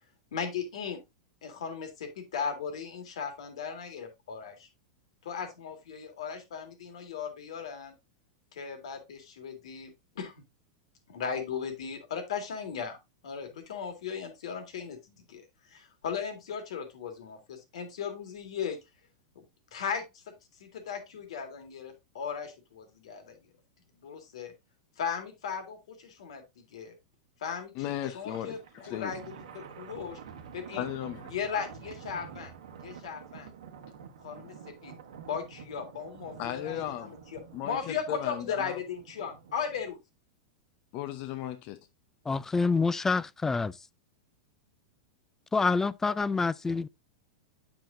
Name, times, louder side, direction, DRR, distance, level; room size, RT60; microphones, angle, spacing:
voice 1, 0.3-1.0 1.4-4.7 5.2-7.9 8.5-10.3 11.1-13.0 13.2-15.4 15.7-18.8 19.4-19.5 19.7-20.3 20.6-23.4 24.0-24.5 25.0-26.9 27.4-28.6 28.9-30.2 30.5-30.9 31.3-32.5 32.8-33.5 34.2-35.0 35.3-40.0, left 6 dB, 70° left, 2.0 m, -37 dB
voice 2, 27.7-29.1 30.7-31.3 36.4-37.1 37.5-37.8 38.1-38.8 40.9-41.8, left 12 dB, 50° left, 0.7 m, -36 dB
Thunder, 28.2-39.9, right 7 dB, 75° right, 1.1 m, -48 dB
voice 3, 42.3-43.7 45.5-46.9, left 4 dB, 10° left, 0.3 m, -27 dB
8.7 x 6.1 x 2.6 m
hypercardioid pair, 105°, 3 cm